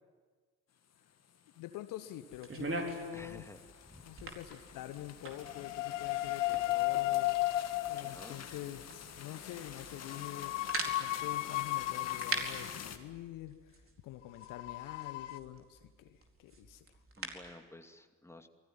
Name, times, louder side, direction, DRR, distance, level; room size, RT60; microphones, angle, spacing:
sound 1, 0.9-13.0, left 8 dB, 45° left, 2.1 m, -49 dB
voice 1, 1.6-3.4 4.0-7.4 7.9-10.5 11.0-16.9, left 13 dB, 60° left, 11 dB, 1.2 m, -46 dB
sound 2, 2.3-17.5, right 3 dB, 35° right, 4.5 m, -45 dB
voice 2, 3.1-3.6 3.9-4.2 8.0-8.4 17.2-18.5, left 2 dB, 5° left, 6 dB, 2.4 m, -52 dB
sound 3, 5.4-8.3 10.0-12.8 14.4-15.4, left 17 dB, 75° left, 0.9 m, -34 dB
28.0 x 20.0 x 9.5 m, 1.5 s
figure-of-eight pair, 45°, 37 cm